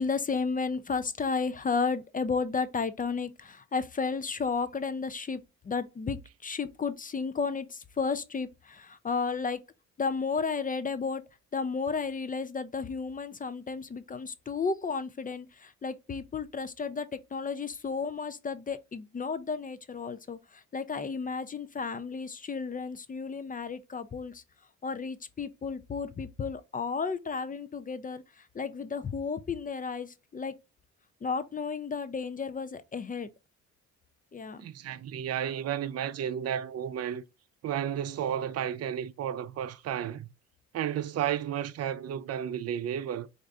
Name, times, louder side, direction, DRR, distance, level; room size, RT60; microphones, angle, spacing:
voice 1, 0.0-5.4 5.7-9.6 10.0-11.2 11.5-20.4 20.7-24.4 24.8-28.2 28.5-30.5 31.2-33.3 34.3-34.6, left 5 dB, 30° left, 0.5 m, -33 dB
voice 2, 34.6-37.2 37.6-40.3 40.7-43.3, right 9 dB, 55° right, 0.5 m, -32 dB
4.5 x 2.6 x 2.5 m
cardioid pair, 90°, 30 cm